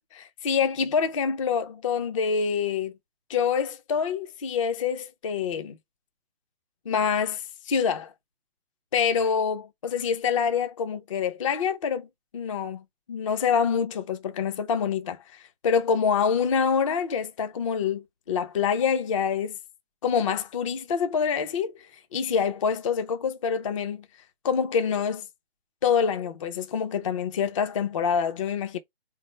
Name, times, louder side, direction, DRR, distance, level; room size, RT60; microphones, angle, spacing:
voice 1, 0.0-2.9 3.3-5.8 6.9-8.1 8.9-12.1 12.3-12.8 13.1-19.5 20.0-21.9 22.1-24.1 24.4-25.3 25.8-28.8, left 6 dB, 35° left, 0.4 m, -26 dB
3.8 x 3.3 x 4.1 m
hypercardioid pair, 145°, 31 cm